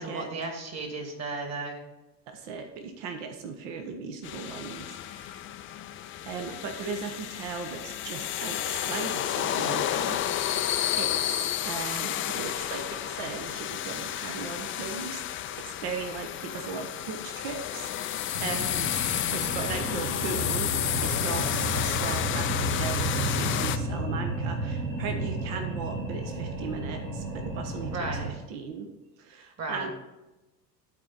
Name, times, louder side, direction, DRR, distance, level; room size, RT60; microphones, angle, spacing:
voice 1, 0.0-1.8 27.9-28.2 29.6-29.9, right 3 dB, 30° right, 3 dB, 2.2 m, -34 dB
voice 2, 2.3-5.5 6.2-10.2 10.6-18.9 19.3-28.9 29.2-29.9, right 5 dB, 55° right, 6 dB, 1.1 m, -37 dB
sound 1, 4.2-23.8, left 11 dB, 25° left, 0.4 m, -31 dB
sound 2, 18.3-28.3, right 1 dB, 90° right, 1.2 m, -32 dB
13.0 x 4.5 x 4.0 m, 1.1 s
figure-of-eight pair, 65°, 49 cm